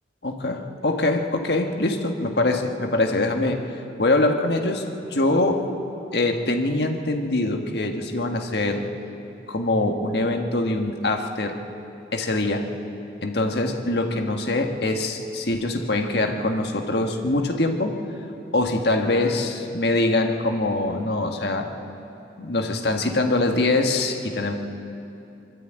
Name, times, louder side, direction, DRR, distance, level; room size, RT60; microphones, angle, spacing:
voice 1, 0.2-3.6 4.0-5.6 6.1-8.8 9.5-11.6 12.1-12.7 13.2-18.0 18.5-21.7 22.4-24.5, left 2 dB, 65° left, 4 dB, 1.6 m, -23 dB
23.0 x 13.0 x 8.9 m, 2.8 s
head